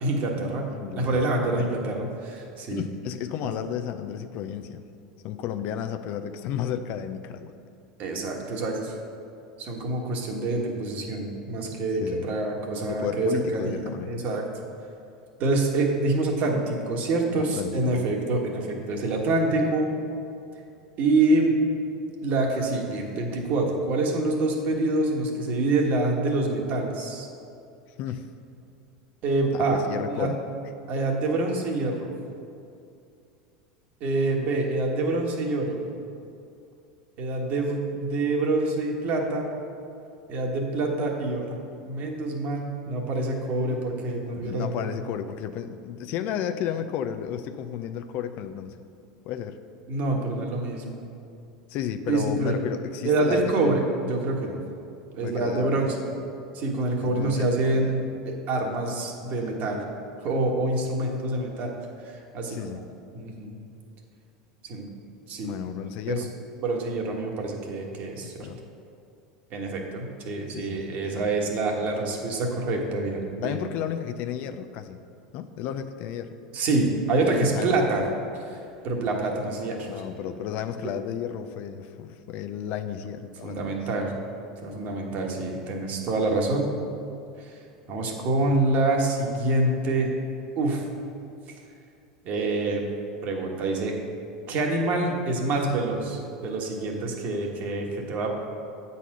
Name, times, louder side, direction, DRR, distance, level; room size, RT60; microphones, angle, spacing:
voice 1, 0.0-2.8 8.0-8.9 9.6-14.4 15.4-19.9 21.0-21.5 22.2-27.3 29.2-29.8 30.1-30.3 30.9-32.1 34.0-35.8 37.2-39.5 40.3-41.6 41.8-44.7 49.9-51.0 52.1-52.6 53.0-54.6 55.1-55.9 56.5-59.8 60.2-61.7 62.0-62.7 63.1-63.5 64.7-64.9 65.3-65.5 66.1-66.2 66.6-68.5 69.5-73.6 76.5-78.0 78.3-79.9 83.4-84.1 84.6-86.7 87.4-87.6 87.9-90.1 90.5-90.8 92.2-92.9 93.2-93.9 94.5-98.3, right 2 dB, 50° right, 0 dB, 1.5 m, -26 dB
voice 2, 0.7-1.7 2.7-4.8 5.2-7.5 12.0-12.3 12.9-14.1 17.6-18.1 28.0-28.2 29.5-30.4 44.4-48.8 49.2-49.6 51.7-53.8 55.2-55.9 57.0-57.5 57.7-57.9 62.5-62.8 65.4-66.4 68.4-68.6 70.5-71.4 73.4-75.0 75.3-76.3 77.3-77.8 79.9-83.8, left 9 dB, 55° left, 9 dB, 0.5 m, -33 dB
8.3 x 4.2 x 6.1 m, 2.5 s
hypercardioid pair, 90°, 4 cm